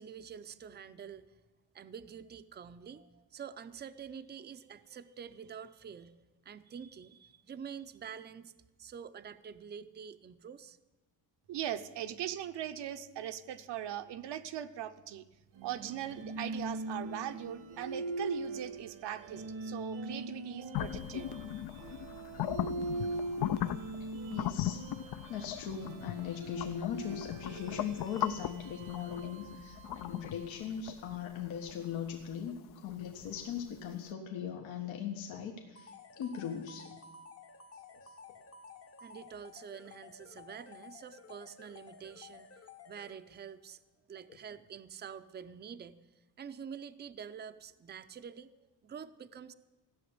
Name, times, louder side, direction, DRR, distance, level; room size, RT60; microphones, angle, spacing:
voice 1, 0.0-1.4 1.7-8.5 8.8-10.8 39.0-42.6 42.9-43.8 44.1-49.5, right 7 dB, 25° right, 11 dB, 0.5 m, -47 dB
voice 2, 11.5-15.2 15.6-21.3, right 11 dB, 65° right, 9 dB, 0.9 m, -40 dB
sound 1, 15.5-30.6, right 2 dB, 90° right, 1.8 m, -42 dB
sound 2, 20.7-33.6, left 12 dB, 55° left, 0.6 m, -38 dB
voice 3, 24.0-24.8 25.3-36.9 38.0-38.1, left 8 dB, 85° left, 1 dB, 1.6 m, -39 dB
sound 3, 35.8-43.5, left 5 dB, 30° left, 0.9 m, -54 dB
15.5 x 7.0 x 9.6 m, 1.1 s
cardioid pair, 120°, 45 cm